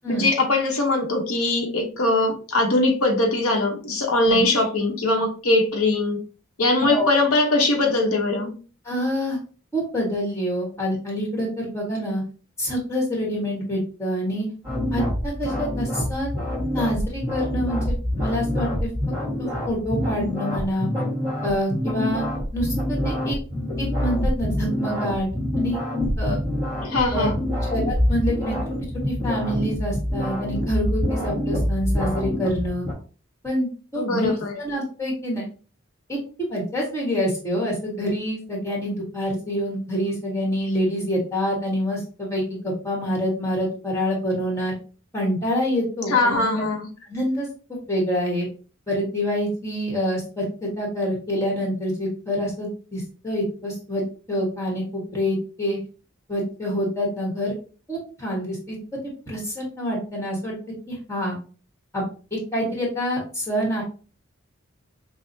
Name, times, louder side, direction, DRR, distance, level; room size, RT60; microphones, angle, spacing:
voice 1, 0.1-6.2 6.6-8.5 26.8-27.5 34.0-34.5 46.1-46.9, left 2 dB, 90° left, 2 dB, 0.9 m, -21 dB
voice 2, 8.8-9.4 9.7-12.2 12.6-14.5 14.9-16.3 16.7-18.9 19.4-20.9 21.4-22.2 22.5-23.4 23.8-25.3 25.6-25.8 26.2-26.4 27.1-27.3 27.7-28.5 29.1-32.9 33.4-35.5 36.1-44.7 45.1-46.4 47.1-48.5 48.9-54.0 54.3-55.8 56.3-57.5 57.9-58.8 59.3-60.6 60.9-61.4 61.9-62.1 62.3-63.8, equal, 15° left, -2 dB, 1.3 m, -26 dB
sound 1, 14.6-32.9, left 1 dB, 15° right, 1.4 m, -26 dB
5.6 x 2.1 x 2.6 m, 0.37 s
head